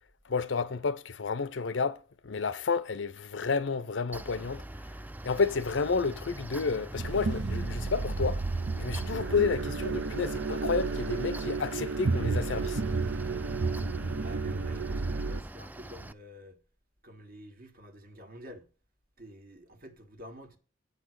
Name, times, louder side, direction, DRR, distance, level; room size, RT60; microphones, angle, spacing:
voice 1, 0.3-4.6 5.2-8.4 8.8-12.8, left 5 dB, 80° left, 0.6 m, -30 dB
Mechanical fan, 4.1-16.1, right 1 dB, 10° right, 0.3 m, -44 dB
sound 1, 6.9-15.4, right 3 dB, 80° right, 0.7 m, -32 dB
voice 2, 14.1-16.6 17.0-18.7 19.2-20.6, equal, 50° right, 1.6 m, -49 dB
8.4 x 5.9 x 6.3 m
head